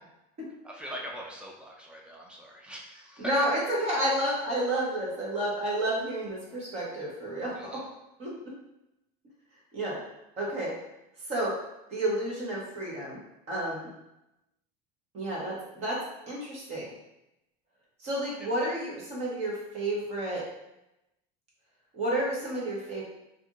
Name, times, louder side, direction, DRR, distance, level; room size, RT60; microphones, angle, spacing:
voice 1, 0.6-3.3 7.6-7.8 13.7-13.8 18.4-18.5, equal, 5° right, -2 dB, 0.3 m, -42 dB
voice 2, 3.2-7.8 8.2-8.3 9.7-10.0 10.4-10.7 11.3-11.5 11.9-13.2 13.5-13.9 15.1-16.0 16.3-16.9 18.0-20.5 21.9-23.0, right 1 dB, 35° right, -5 dB, 1.0 m, -30 dB
2.8 x 2.5 x 2.4 m, 0.89 s
cardioid pair, 160°, 19 cm